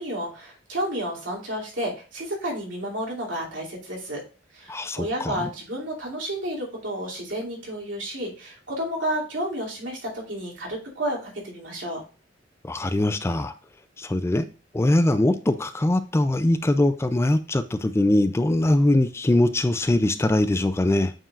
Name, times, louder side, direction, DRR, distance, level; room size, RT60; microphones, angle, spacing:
voice 1, 0.0-4.2 4.5-12.0, equal, 80° right, 2.7 m, -31 dB
voice 2, 4.7-5.5 12.6-13.5 14.0-14.5 14.7-21.1, left 1 dB, 15° left, 0.3 m, -22 dB
8.9 x 4.7 x 2.4 m
head